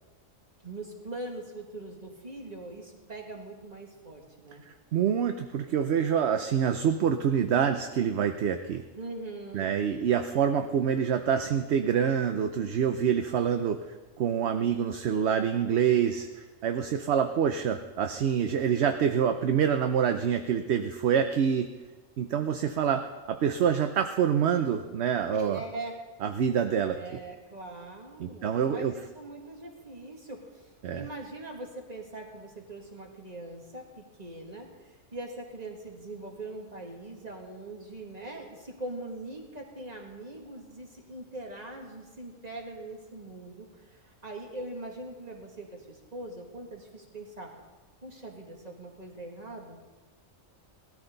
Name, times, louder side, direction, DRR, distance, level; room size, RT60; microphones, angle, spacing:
voice 1, 0.6-4.6 9.0-9.7 25.3-26.0 26.8-47.5 48.0-49.8, right 2 dB, 30° right, 0 dB, 2.2 m, -42 dB
voice 2, 4.9-8.8 9.5-13.8 14.2-21.7 22.2-25.6 26.2-27.2 28.2-28.9 30.8-31.1, right 8 dB, 60° right, 7 dB, 0.9 m, -26 dB
18.5 x 13.5 x 3.9 m, 1.2 s
omnidirectional pair, 1.4 m